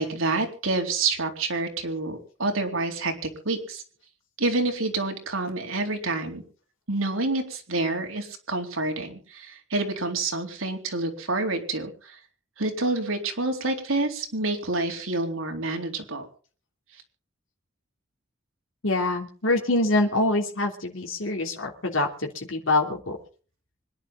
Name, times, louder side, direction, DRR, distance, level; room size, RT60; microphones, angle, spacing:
voice 1, 0.0-3.1 3.4-3.8 4.4-6.4 6.9-12.2 12.6-16.3, right 2 dB, 90° right, 3 dB, 4.0 m, -28 dB
voice 2, 18.8-23.2, left 2 dB, 75° left, 1 dB, 3.2 m, -25 dB
25.0 x 11.0 x 3.9 m, 0.40 s
head